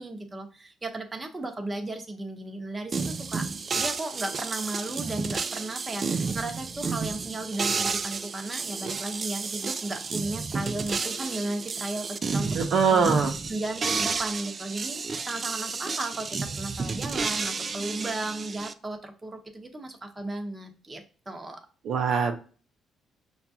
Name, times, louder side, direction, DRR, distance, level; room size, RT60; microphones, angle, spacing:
voice 1, 0.0-3.5 3.7-12.6 12.9-13.1 13.5-21.6, right 2 dB, 20° right, 4 dB, 0.8 m, -35 dB
sound 1, 2.9-18.7, right 4 dB, 40° right, 0.3 m, -31 dB
voice 2, 12.5-13.3 21.8-22.4, right 5 dB, 70° right, 3 dB, 0.6 m, -22 dB
5.7 x 2.3 x 2.7 m, 0.39 s
cardioid pair, 90°, 0 cm